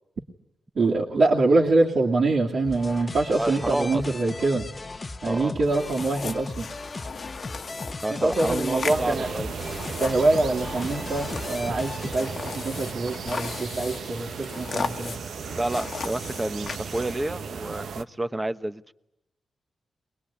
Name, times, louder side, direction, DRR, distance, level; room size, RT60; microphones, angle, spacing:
voice 1, 0.7-4.7 5.2-6.7 8.1-9.3 10.0-15.1 15.5-15.6, right 2 dB, 65° right, 2.6 m, -24 dB
sound 1, 2.6-12.1, left 3 dB, 35° left, 0.9 m, -37 dB
voice 2, 3.4-4.0 5.2-5.7 8.0-9.5 15.5-18.9, right 1 dB, 20° right, 1.1 m, -30 dB
sound 2, 5.7-17.3, left 5 dB, 60° left, 1.3 m, -37 dB
sound 3, 8.9-18.0, right 6 dB, 80° right, 1.0 m, -36 dB
22.5 x 21.0 x 9.9 m
cardioid pair, 80°, 0 cm